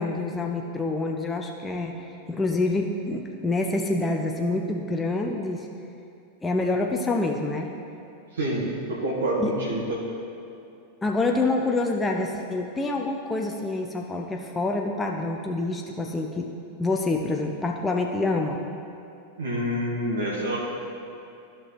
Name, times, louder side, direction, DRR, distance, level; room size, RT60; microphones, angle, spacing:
voice 1, 0.0-2.0 2.3-5.7 6.4-7.7 9.4-9.5 11.0-16.5 16.8-18.6, left 2 dB, 10° left, 1 dB, 0.6 m, -27 dB
voice 2, 8.3-9.8 19.4-20.6, right 1 dB, 65° right, -5 dB, 1.5 m, -27 dB
14.0 x 6.0 x 3.3 m, 2.6 s
figure-of-eight pair, 90°, 0 cm